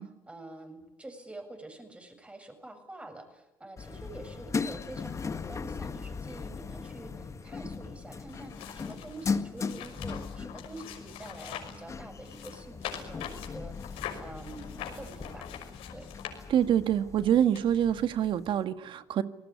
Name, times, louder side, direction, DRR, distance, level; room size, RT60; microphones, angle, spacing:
voice 1, 0.3-15.5 15.9-16.1, right 2 dB, 10° right, 6 dB, 7.0 m, -47 dB
sound 1, 3.8-18.6, left 5 dB, 30° left, 1.8 m, -38 dB
sound 2, 8.3-11.8 12.2-16.9 17.6-17.7, left 10 dB, 80° left, 6.0 m, -43 dB
voice 2, 16.5-19.2, right 10 dB, 55° right, 11 dB, 1.8 m, -26 dB
28.0 x 19.0 x 9.7 m, 0.87 s
cardioid pair, 95°, 10 cm